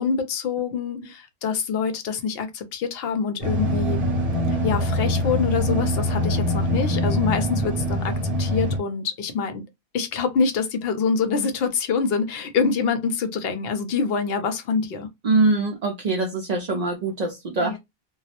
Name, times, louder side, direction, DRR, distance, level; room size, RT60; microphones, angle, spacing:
voice 1, 0.0-4.0 4.5-9.6 9.9-15.1 17.6-17.8, left 5 dB, 70° left, 0.8 m, -25 dB
sound 1, 3.4-8.8, left 1 dB, 40° right, 0.8 m, -24 dB
voice 2, 15.2-17.8, right 3 dB, 55° right, 0.4 m, -23 dB
2.2 x 2.0 x 2.7 m
omnidirectional pair, 1.1 m